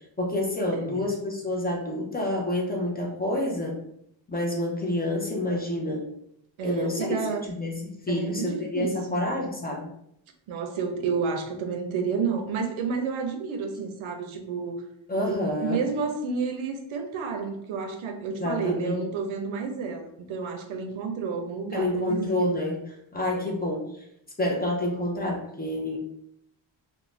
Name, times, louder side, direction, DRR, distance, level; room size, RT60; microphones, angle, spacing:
voice 1, 0.2-3.8 4.3-6.1 6.6-7.2 7.4-9.8 15.1-15.8 18.4-19.0 21.7-22.8 23.1-23.8 24.4-26.0, left 1 dB, 20° left, -1 dB, 0.3 m, -28 dB
voice 2, 0.7-1.0 6.6-7.5 8.1-9.3 10.5-14.8 15.2-22.6 23.3-23.6, right 5 dB, 90° right, 4 dB, 0.6 m, -30 dB
2.4 x 2.1 x 3.1 m, 0.75 s
wide cardioid pair, 135°, 47 cm